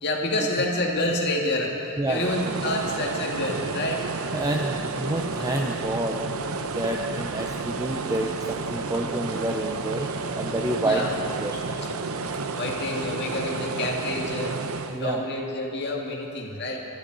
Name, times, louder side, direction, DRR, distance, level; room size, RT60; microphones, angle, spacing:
voice 1, 0.0-4.0 5.4-5.5 10.8-11.1 12.6-14.6 14.9-16.9, left 1 dB, 50° left, -1 dB, 1.9 m, -28 dB
sound 1, 2.1-15.0, right 4 dB, 75° right, 0.7 m, -31 dB
voice 2, 4.3-6.2 6.5-10.1 10.4-11.1 11.4-11.7 14.9-15.2, right 1 dB, 15° right, 1 dB, 0.6 m, -28 dB
23.0 x 11.5 x 4.0 m, 2.9 s
head